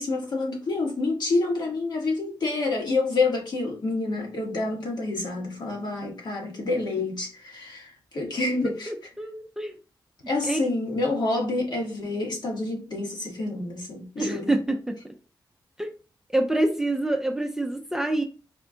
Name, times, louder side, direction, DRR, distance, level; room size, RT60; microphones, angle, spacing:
voice 1, 0.0-8.9 10.3-14.4, left 3 dB, 60° left, 1.5 m, -28 dB
voice 2, 8.9-9.7 10.5-10.6 14.2-15.0 15.8-15.9 16.3-18.2, right 1 dB, 5° right, 0.5 m, -26 dB
4.4 x 2.3 x 3.8 m
cardioid pair, 90°, 8 cm